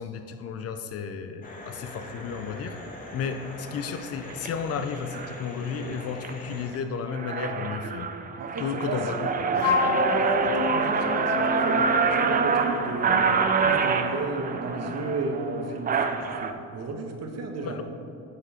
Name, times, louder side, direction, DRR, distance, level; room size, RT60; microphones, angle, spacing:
voice 1, 0.0-2.8 3.1-8.1 8.6-9.2 17.6-17.8, left 6 dB, 45° left, 8 dB, 0.6 m, -33 dB
sound 1, 1.4-6.7, left 1 dB, 25° left, 1.5 m, -42 dB
sound 2, 4.3-4.5 5.1-5.4 5.9-6.3 6.7-6.8 7.1-16.5, right 5 dB, 25° right, 0.5 m, -26 dB
voice 2, 8.4-9.0 9.4-13.3 13.6-17.8, right 3 dB, 50° right, 4 dB, 1.3 m, -34 dB
Wind instrument woodwind instrument, 9.6-12.5, left 7 dB, 75° left, 1.1 m, -28 dB
11.0 x 6.6 x 4.3 m, 2.5 s
cardioid pair, 115°, 33 cm